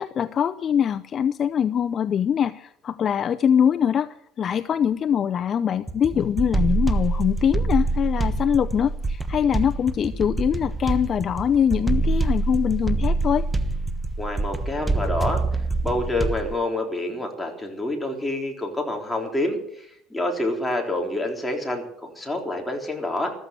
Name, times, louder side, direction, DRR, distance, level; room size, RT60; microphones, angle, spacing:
voice 1, 0.0-4.1 4.4-13.5, left 8 dB, 40° left, 11 dB, 0.6 m, -23 dB
sound 1, 5.9-16.5, right 2 dB, 10° right, 1.2 m, -25 dB
voice 2, 14.2-15.4 15.8-23.3, left 1 dB, 5° left, 1 dB, 3.9 m, -27 dB
14.5 x 14.0 x 6.8 m, 0.71 s
cardioid pair, 120°, 0 cm